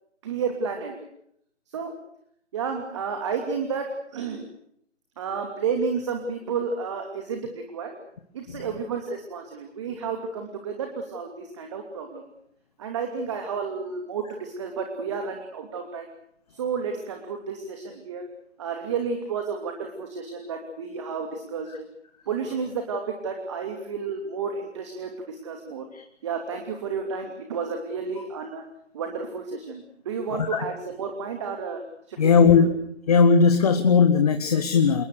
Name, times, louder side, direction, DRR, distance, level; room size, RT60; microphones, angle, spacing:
voice 1, 0.2-0.9 1.7-2.0 2.5-4.4 5.2-8.0 8.3-12.3 12.8-16.1 16.5-18.3 18.6-21.8 22.3-25.8 26.2-28.6 28.9-31.8 32.1-32.4, right 5 dB, 25° right, 4 dB, 2.7 m, -31 dB
voice 2, 30.3-30.7 32.2-32.7 33.1-35.0, left 5 dB, 30° left, 7 dB, 1.8 m, -18 dB
28.0 x 21.0 x 6.7 m, 0.71 s
figure-of-eight pair, 160°, 37 cm